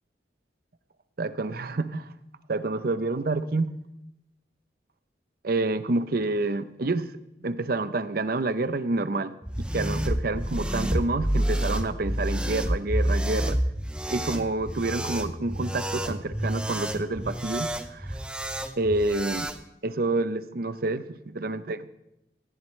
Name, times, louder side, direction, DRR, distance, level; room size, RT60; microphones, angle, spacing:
voice 1, 1.2-2.2 2.5-3.7 5.4-13.6 14.1-18.2 18.8-19.5 19.8-21.9, right 2 dB, 55° right, 12 dB, 0.7 m, -28 dB
sound 1, 9.4-19.6, equal, 5° right, 0.7 m, -29 dB
18.5 x 14.0 x 3.2 m, 0.85 s
head